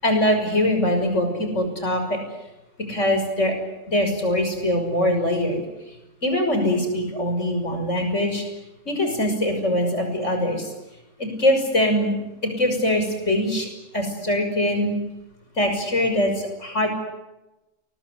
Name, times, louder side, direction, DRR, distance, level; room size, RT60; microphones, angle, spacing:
voice 1, 0.0-2.2 2.9-3.5 3.9-5.6 6.2-8.4 8.9-10.7 11.2-12.1 12.4-13.7 13.9-14.9 15.6-16.9, left 1 dB, 50° left, 5 dB, 6.5 m, -22 dB
29.0 x 23.0 x 8.2 m, 1.0 s
omnidirectional pair, 1.6 m